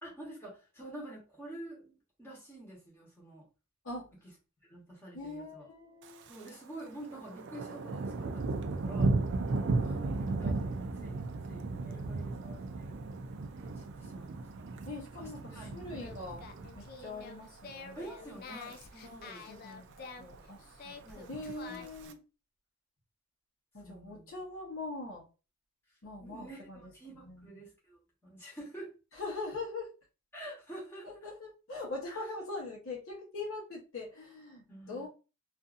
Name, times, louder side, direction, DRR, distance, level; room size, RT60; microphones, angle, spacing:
voice 1, 0.0-1.9 2.2-3.4 4.6-5.7 6.3-9.1 9.8-11.2 11.5-12.9 13.6-14.7 15.2-16.3 17.9-19.5 21.0-21.3 21.7-22.1 23.8-24.3 26.2-28.9 30.3-31.2 32.1-32.2 34.7-35.1, right 1 dB, 10° left, -5 dB, 1.0 m, -48 dB
voice 2, 5.1-6.3 14.9-16.4 16.8-18.0 19.0-22.2 23.7-25.2 26.0-27.6 29.1-29.9 31.0-35.1, left 2 dB, 70° left, -2 dB, 0.9 m, -42 dB
Thunder, 6.0-6.6 6.9-17.2 17.6-17.9 18.4-18.8 19.1-19.2 19.4-19.5 19.8-20.4 21.2-22.1, right 3 dB, 55° right, 0.4 m, -35 dB
Singing, 15.8-22.1, left 4 dB, 45° left, 0.3 m, -49 dB
2.6 x 2.5 x 2.4 m, 0.32 s
head